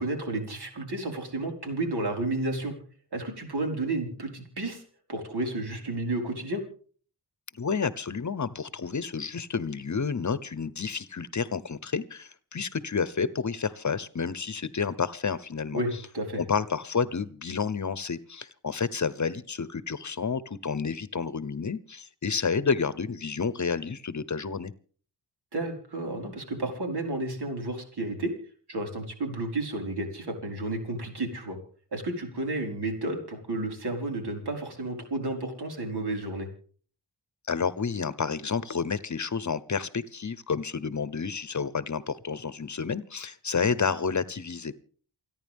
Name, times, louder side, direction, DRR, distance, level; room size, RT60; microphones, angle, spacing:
voice 1, 0.0-2.8 3.1-4.8 5.1-6.6 15.7-16.4 25.5-28.3 28.7-31.6 31.9-36.5, right 2 dB, 70° right, 3 dB, 5.1 m, -32 dB
voice 2, 7.5-15.8 16.4-24.7 37.5-44.8, left 5 dB, 45° left, 17 dB, 0.9 m, -30 dB
28.5 x 10.5 x 3.6 m, 0.44 s
wide cardioid pair, 90°, 41 cm